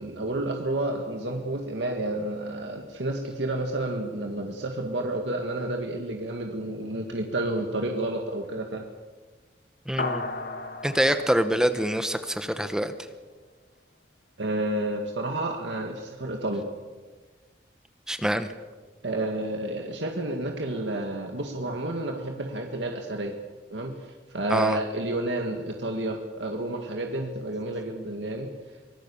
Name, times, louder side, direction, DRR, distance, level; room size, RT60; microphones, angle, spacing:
voice 1, 0.0-8.9 14.4-16.6 19.0-23.4 23.7-23.9 24.3-28.5, right 1 dB, 80° right, 2 dB, 2.0 m, -30 dB
voice 2, 9.9-10.3 10.8-12.9 18.1-18.5 24.5-24.8, equal, 5° right, 9 dB, 1.0 m, -25 dB
sound 1, 10.0-12.7, left 3 dB, 55° left, 1.5 m, -35 dB
25.0 x 18.5 x 7.2 m, 1.4 s
head